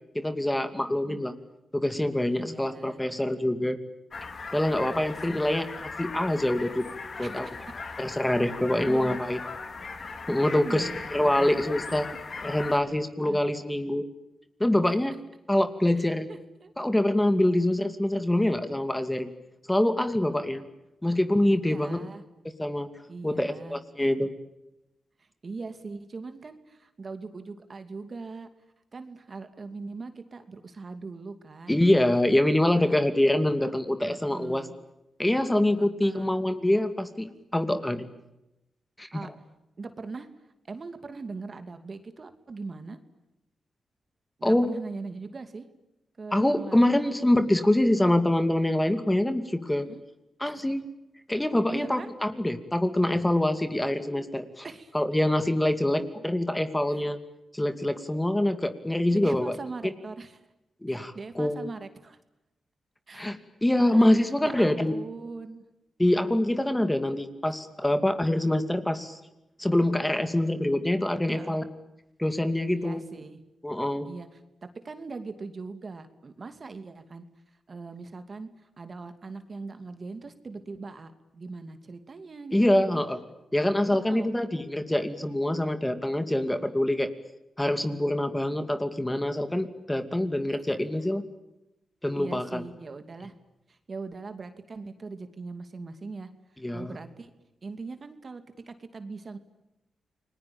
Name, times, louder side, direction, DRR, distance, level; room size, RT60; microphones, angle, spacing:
voice 1, 0.1-1.3 1.7-3.8 4.5-5.6 6.0-6.9 7.2-7.5 8.0-9.4 10.3-12.1 12.4-14.1 14.6-15.1 15.5-16.3 16.8-19.3 19.7-20.6 21.0-22.0 22.6-22.9 23.2-24.3 31.7-34.7 35.2-38.1 39.0-39.3 44.4-44.7 46.3-49.9 50.4-50.8 51.3-54.6 54.9-57.2 57.5-59.5 59.8-59.9 60.8-61.7 63.1-64.9 66.0-69.2 69.6-71.6 72.2-73.0 73.6-74.1 82.5-83.2 83.5-87.1 87.6-91.2 92.0-92.6 96.6-97.0, left 1 dB, 10° left, 9 dB, 2.5 m, -25 dB
voice 2, 0.9-1.2 2.3-3.0 4.5-5.6 7.2-7.6 8.8-9.2 10.0-10.1 10.5-11.5 11.9-12.2 13.3-13.4 14.9-15.0 16.3-16.7 21.7-22.2 23.1-23.8 25.2-28.5 28.9-31.8 32.7-33.1 34.0-34.7 35.8-36.3 39.1-39.3 39.8-40.3 40.6-43.0 44.4-45.7 46.2-47.2 49.8-50.0 50.4-50.5 51.7-52.1 54.6-55.0 56.9-57.0 59.1-60.4 61.1-62.2 63.1-63.3 63.8-64.1 64.4-65.6 71.3-71.6 72.7-73.4 74.0-74.4 74.8-77.2 77.7-83.0 83.9-84.3 90.5-90.7 92.1-93.3 93.7-96.3 96.7-97.3 97.6-99.4, right 4 dB, 45° right, 9 dB, 2.6 m, -41 dB
sound 1, 4.1-12.8, left 4 dB, 50° left, 3.5 m, -39 dB
29.5 x 20.5 x 8.8 m, 0.92 s
cardioid pair, 75°, 0 cm